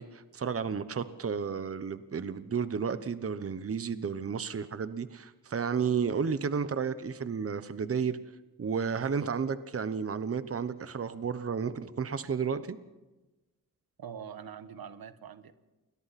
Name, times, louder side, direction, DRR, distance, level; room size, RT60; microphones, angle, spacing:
voice 1, 0.0-8.2 8.6-12.8, right 6 dB, 40° right, 12 dB, 1.0 m, -32 dB
voice 2, 14.0-15.5, right 7 dB, 85° right, 10 dB, 1.4 m, -44 dB
29.0 x 22.0 x 4.3 m, 1.1 s
wide cardioid pair, 110°, 35 cm